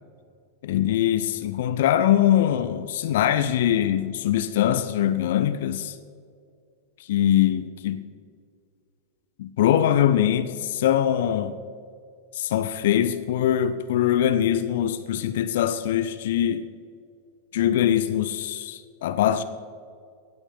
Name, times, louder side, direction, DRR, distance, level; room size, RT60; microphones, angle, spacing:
voice 1, 0.6-6.0 7.1-8.0 9.4-11.5 12.3-16.6 17.5-19.4, left 11 dB, 55° left, 0.6 m, -22 dB
17.5 x 6.2 x 7.8 m
figure-of-eight pair, 90°, 0 cm